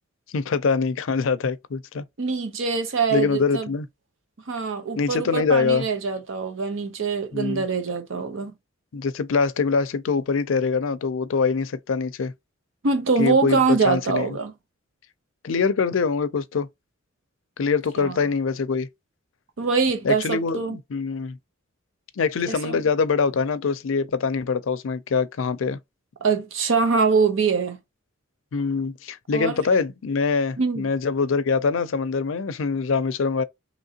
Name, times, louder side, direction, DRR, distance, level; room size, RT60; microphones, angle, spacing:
voice 1, 0.3-2.1 3.1-3.9 5.0-5.8 7.3-7.6 8.9-12.3 13.2-14.4 15.4-16.7 17.6-18.9 20.0-21.4 22.2-25.8 28.5-33.4, left 5 dB, 80° left, 0.4 m, -24 dB
voice 2, 2.2-3.7 4.5-8.5 12.8-14.5 18.0-18.2 19.6-20.8 22.4-22.8 26.2-27.8 29.3-29.6 30.6-30.9, right 4 dB, 80° right, 0.7 m, -23 dB
3.6 x 3.0 x 2.7 m
head